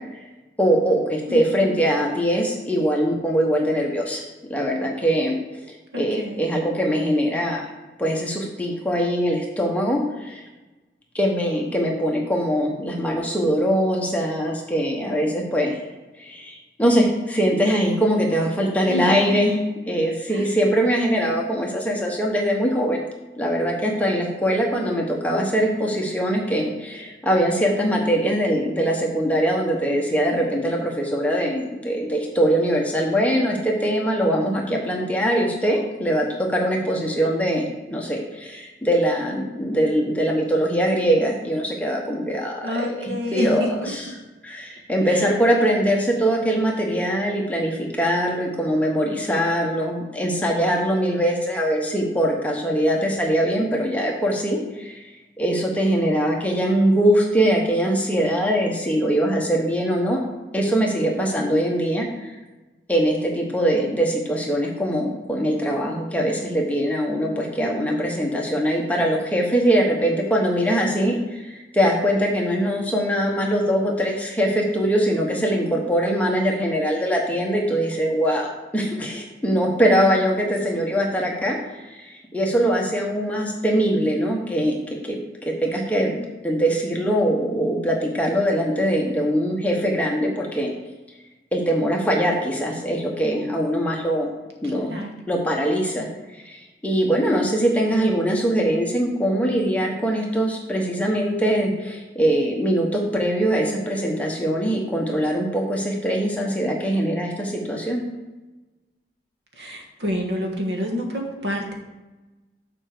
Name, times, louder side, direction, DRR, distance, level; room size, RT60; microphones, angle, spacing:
voice 1, 0.6-4.2 4.5-5.6 5.9-7.7 8.0-10.4 11.1-15.7 16.2-19.6 19.9-23.0 23.4-44.1 44.4-55.1 55.4-60.2 60.5-62.4 62.9-81.6 81.9-84.8 85.1-85.2 85.6-90.7 91.5-94.3 94.6-94.9 95.3-108.0, equal, 10° left, -1 dB, 1.1 m, -22 dB
voice 2, 1.3-1.8 5.9-6.5 18.9-19.3 20.3-20.5 42.6-43.9 45.1-45.2 79.8-80.0 94.9-95.1 109.6-111.7, left 1 dB, 80° right, 1 dB, 1.5 m, -28 dB
7.2 x 4.4 x 6.7 m, 1.1 s
head